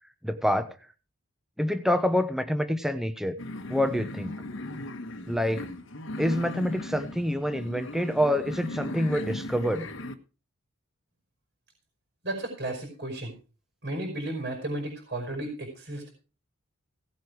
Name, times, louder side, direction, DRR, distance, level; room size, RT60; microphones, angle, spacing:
voice 1, 0.2-0.8 1.6-3.4 3.7-4.3 5.3-5.7 6.2-9.9, equal, ahead, 10 dB, 0.9 m, -27 dB
sound 1, 3.4-10.1, left 2 dB, 60° left, 1.3 m, -37 dB
voice 2, 12.2-13.3 13.8-16.1, right 1 dB, 50° right, 1 dB, 5.0 m, -34 dB
17.0 x 8.3 x 4.7 m, 0.35 s
head